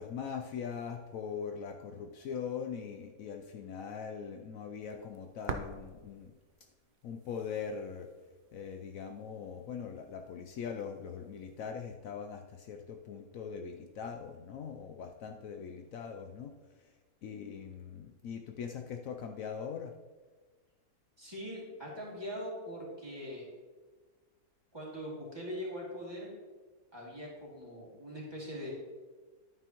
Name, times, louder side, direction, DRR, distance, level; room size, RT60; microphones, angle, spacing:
voice 1, 0.0-6.3 7.0-8.1 8.5-16.5 17.2-20.0, left 6 dB, 70° left, 4 dB, 1.0 m, -41 dB
sound 1, 4.8-11.6, right 5 dB, 60° right, 0.5 m, -48 dB
voice 2, 21.2-23.5 24.7-26.3 26.9-28.7, equal, 15° right, -5 dB, 2.6 m, -42 dB
11.0 x 9.3 x 3.0 m, 1.4 s
omnidirectional pair, 1.6 m